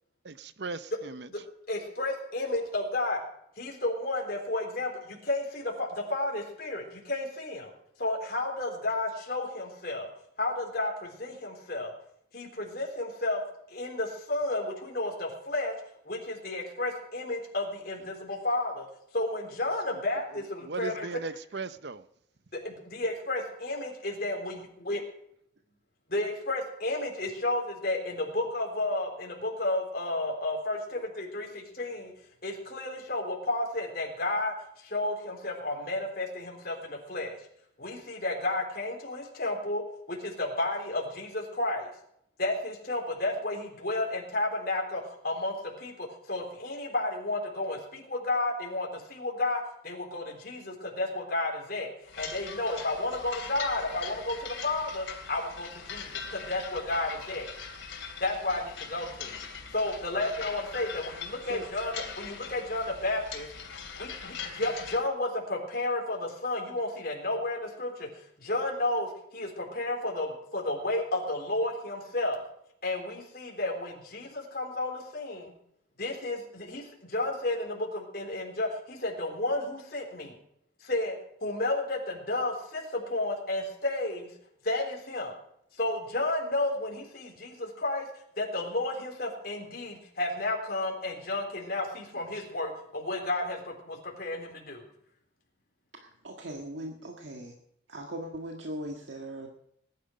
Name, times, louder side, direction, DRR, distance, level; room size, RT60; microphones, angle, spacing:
voice 1, 0.2-1.3 20.6-22.0, right 4 dB, 60° right, 0.7 m, -37 dB
voice 2, 1.7-3.2 3.6-7.7 8.0-10.1 10.4-11.9 12.3-13.4 13.7-15.7 16.1-18.9 19.1-21.1 22.5-25.0 26.1-32.1 32.4-37.4 37.8-41.9 42.4-51.9 52.2-57.5 58.2-59.4 59.7-63.5 64.0-68.1 68.4-72.4 72.8-75.5 76.0-80.3 80.8-84.3 84.6-85.3 85.8-88.1 88.4-94.8, left 2 dB, 50° left, 3.7 m, -32 dB
sound 1, 52.1-65.0, left 6 dB, 90° left, 3.0 m, -41 dB
voice 3, 96.0-97.5 97.9-99.5, right 1 dB, 75° right, 1.8 m, -39 dB
19.5 x 10.5 x 5.2 m
head